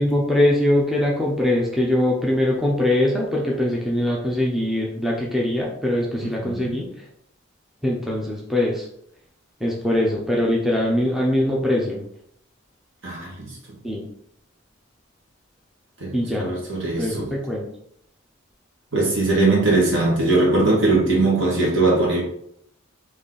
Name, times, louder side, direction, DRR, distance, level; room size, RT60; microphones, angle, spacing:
voice 1, 0.0-6.9 7.8-8.9 9.6-12.0 13.8-14.1 16.1-16.5 16.9-17.7, left 1 dB, ahead, -3 dB, 0.6 m, -22 dB
voice 2, 6.2-6.8 13.0-13.5 16.0-17.3 18.9-22.2, right 2 dB, 60° right, -3 dB, 1.6 m, -20 dB
4.2 x 3.1 x 3.8 m, 0.73 s
head